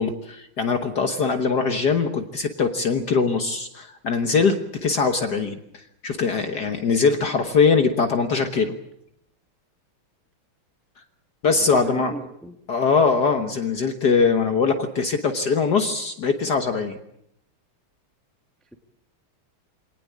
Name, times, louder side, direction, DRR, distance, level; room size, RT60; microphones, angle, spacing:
voice 1, 0.0-8.7 11.4-12.1 12.7-17.0, left 5 dB, 55° left, 6 dB, 1.7 m, -22 dB
voice 2, 11.5-12.6, right 1 dB, ahead, 5 dB, 1.4 m, -37 dB
24.5 x 18.5 x 8.5 m, 0.78 s
omnidirectional pair, 2.3 m